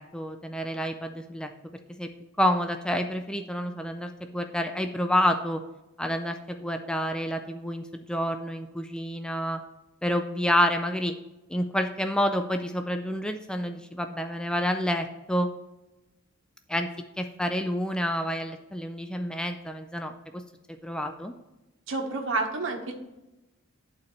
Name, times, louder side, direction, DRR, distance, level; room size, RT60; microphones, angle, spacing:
voice 1, 0.0-1.5 2.0-2.1 2.4-5.6 6.0-9.6 10.0-11.1 11.5-15.5 16.7-16.9 17.2-20.4 20.8-21.3, equal, 5° left, 6 dB, 0.4 m, -28 dB
voice 2, 21.9-22.9, right 3 dB, 65° right, 2 dB, 1.2 m, -29 dB
11.0 x 4.3 x 3.1 m, 1.0 s
head